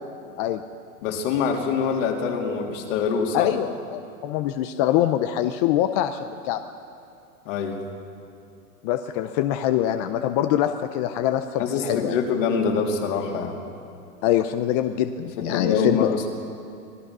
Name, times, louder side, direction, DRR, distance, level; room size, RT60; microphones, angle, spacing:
voice 1, 1.0-3.5 7.4-7.8 11.6-13.6 15.4-16.3, left 5 dB, 50° left, 1 dB, 3.3 m, -25 dB
voice 2, 3.3-6.6 8.8-12.2 14.2-16.1, left 12 dB, 25° left, 9 dB, 0.5 m, -24 dB
25.0 x 17.5 x 6.1 m, 2.5 s
hypercardioid pair, 135°, 46 cm